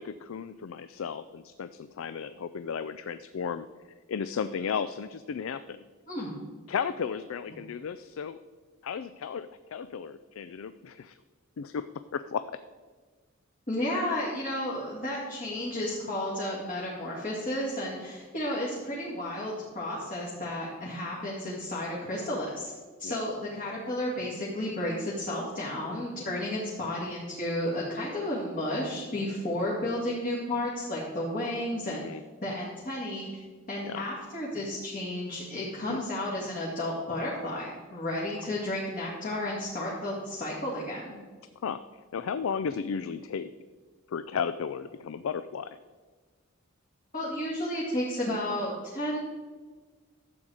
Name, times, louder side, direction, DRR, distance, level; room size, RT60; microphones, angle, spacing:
voice 1, 0.0-3.7 4.1-5.8 6.7-8.4 8.8-11.1 11.6-11.8 12.1-12.6 23.0-23.2 31.9-32.2 33.9-34.0 35.9-36.0 41.6-43.5 44.1-45.8, left 6 dB, 75° left, 12 dB, 0.4 m, -34 dB
voice 2, 13.7-22.7 23.0-32.0 32.4-33.3 33.7-41.2 47.1-49.2, left 1 dB, 40° left, -6 dB, 2.2 m, -32 dB
12.5 x 7.9 x 4.9 m, 1.4 s
head